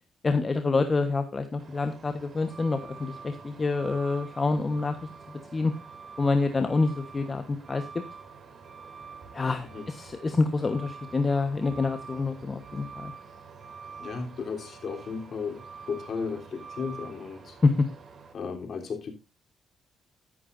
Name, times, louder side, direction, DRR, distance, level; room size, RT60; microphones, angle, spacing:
voice 1, 0.2-5.0 5.5-5.7 6.2-7.8 9.3-13.1 17.6-17.7, left 3 dB, 30° left, 1.1 m, -27 dB
Truck, 1.6-18.3, right 5 dB, 50° right, 2.8 m, -46 dB
voice 2, 14.0-17.6 18.3-19.1, left 5 dB, 50° left, 3.4 m, -35 dB
13.5 x 11.0 x 2.6 m
cardioid pair, 90°, 0 cm